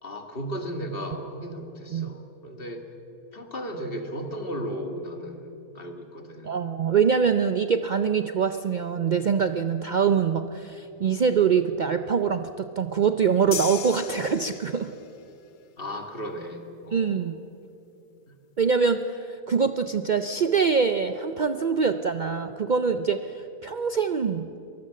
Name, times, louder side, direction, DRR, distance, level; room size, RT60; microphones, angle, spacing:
voice 1, 0.0-2.9 3.3-6.6 15.8-17.3, equal, 35° left, 5 dB, 2.1 m, -35 dB
voice 2, 6.4-14.9 16.9-17.4 18.6-24.5, right 6 dB, 75° right, 9 dB, 0.4 m, -24 dB
sound 1, 13.5-15.1, left 8 dB, 55° left, 0.5 m, -35 dB
23.5 x 20.0 x 7.6 m, 2.9 s
omnidirectional pair, 1.7 m